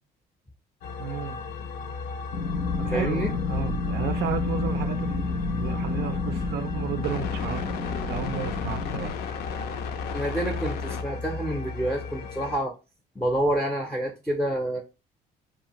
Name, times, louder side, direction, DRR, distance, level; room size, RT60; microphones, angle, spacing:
sound 1, 0.8-12.6, left 5 dB, 70° left, 0.4 m, -34 dB
voice 1, 1.0-1.4 2.8-7.7 8.1-9.1, right 9 dB, 75° right, 0.4 m, -33 dB
sound 2, 2.3-9.1, left 4 dB, 85° left, 0.8 m, -30 dB
voice 2, 2.9-3.3 10.1-12.7 13.2-14.8, right 1 dB, 5° left, 0.5 m, -28 dB
2.7 x 2.4 x 2.8 m
cardioid pair, 110°, 17 cm